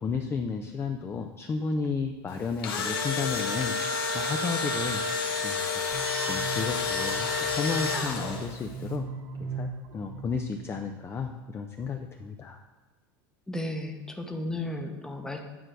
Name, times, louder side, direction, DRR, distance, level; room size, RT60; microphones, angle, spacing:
voice 1, 0.0-5.0 5.4-5.8 6.2-9.1 9.4-12.6, left 5 dB, 20° left, 5 dB, 0.4 m, -33 dB
Engine / Drill, 2.4-8.6, left 4 dB, 90° left, 1.1 m, -29 dB
sound 1, 5.9-11.0, right 5 dB, 50° right, 0.8 m, -39 dB
voice 2, 13.5-15.4, left 1 dB, 5° left, 4 dB, 0.8 m, -34 dB
9.1 x 3.2 x 6.1 m, 1.3 s
supercardioid pair, 120°, 12 cm